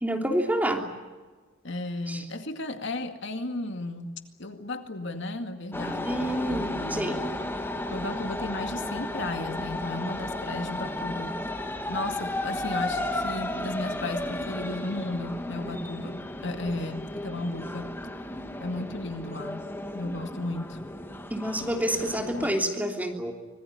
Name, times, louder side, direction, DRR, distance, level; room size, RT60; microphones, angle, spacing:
voice 1, 0.0-0.8 2.1-2.2 6.0-7.2 21.3-23.3, right 1 dB, 10° right, 2 dB, 3.2 m, -28 dB
voice 2, 1.6-7.2 7.9-11.4 11.9-17.9 18.6-19.7 19.9-20.8, left 2 dB, 70° left, 6 dB, 2.2 m, -34 dB
sound 1, 5.7-22.5, left 1 dB, 10° left, 1.8 m, -34 dB
25.5 x 20.5 x 9.8 m, 1.3 s
head